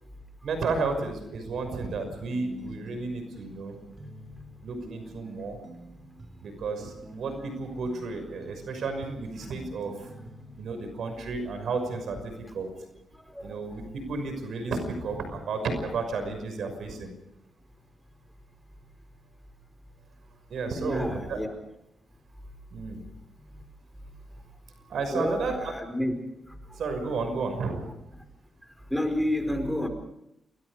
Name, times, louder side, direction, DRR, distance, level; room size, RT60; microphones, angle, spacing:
voice 1, 0.4-3.7 4.6-5.6 6.4-10.1 10.6-12.7 13.4-17.1 20.5-21.4 22.7-23.0 24.9-25.7 26.8-27.9, right 4 dB, 75° right, 7 dB, 5.9 m, -32 dB
sound 1, 1.8-10.6, right 2 dB, 40° right, 4.2 m, -48 dB
voice 2, 13.1-13.5 20.8-21.5 25.1-26.1 26.4-26.8 28.9-29.9, left 1 dB, ahead, 6 dB, 5.0 m, -30 dB
28.5 x 22.5 x 5.0 m, 0.81 s
cardioid pair, 80°, 0 cm